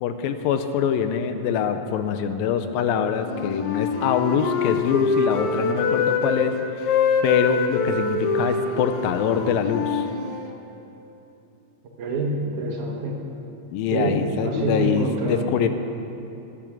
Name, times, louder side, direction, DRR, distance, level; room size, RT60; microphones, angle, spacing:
voice 1, 0.0-6.5 7.2-10.1 13.7-15.7, left 7 dB, 85° left, 8 dB, 2.4 m, -24 dB
Wind instrument woodwind instrument, 3.2-6.5 6.8-10.6, left 4 dB, 70° left, 2.0 m, -24 dB
voice 2, 12.0-13.2 13.9-14.2 14.4-15.5, right 2 dB, 65° right, 1 dB, 2.3 m, -26 dB
14.5 x 8.9 x 6.0 m, 2.9 s
omnidirectional pair, 4.1 m